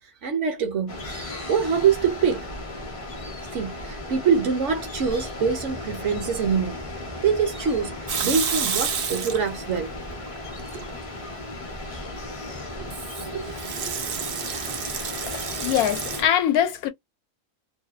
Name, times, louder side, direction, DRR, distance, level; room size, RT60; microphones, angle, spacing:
voice 1, 0.2-1.0 1.3-2.5 3.5-6.8 7.2-9.9 12.7-12.9 13.2-13.5, right 6 dB, 65° right, 0.8 m, -24 dB
sound 1, 0.9-16.3, left 2 dB, 40° left, 0.4 m, -36 dB
Water tap faucet / Sink (filling or washing) / Liquid, 8.1-9.8 10.1-10.9 12.9-16.2, right 7 dB, 80° right, 0.4 m, -30 dB
voice 2, 15.3-16.9, left 10 dB, 80° left, 1.0 m, -23 dB
2.7 x 2.2 x 2.3 m
omnidirectional pair, 1.6 m